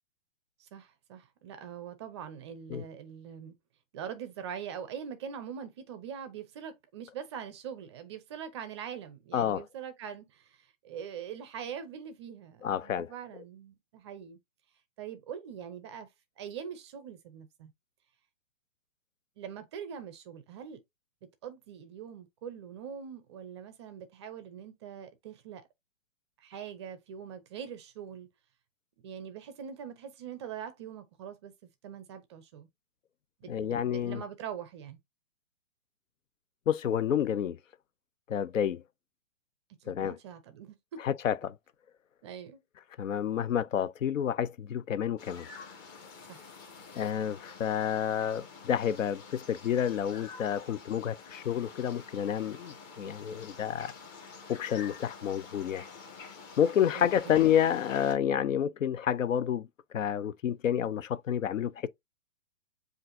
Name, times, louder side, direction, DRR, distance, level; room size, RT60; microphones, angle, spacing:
voice 1, 0.6-3.5 3.9-14.4 15.0-16.1 16.4-17.7 19.4-20.8 21.4-25.7 26.4-28.3 29.0-31.5 31.8-32.7 33.4-35.0 39.8-41.0 42.2-42.6 46.3-46.5 57.0-57.6, right 8 dB, 25° right, 0.5 m, -43 dB
voice 2, 9.3-9.6 12.6-13.1 33.5-34.2 36.7-37.6 38.3-38.8 39.9-40.2 41.0-41.6 43.0-45.5 46.9-53.9 54.5-55.8 56.6-59.7 59.9-61.9, left 9 dB, 75° left, 0.6 m, -29 dB
sound 1, 45.2-58.2, left 5 dB, 25° left, 1.2 m, -48 dB
7.5 x 2.5 x 2.6 m
hypercardioid pair, 130°, 39 cm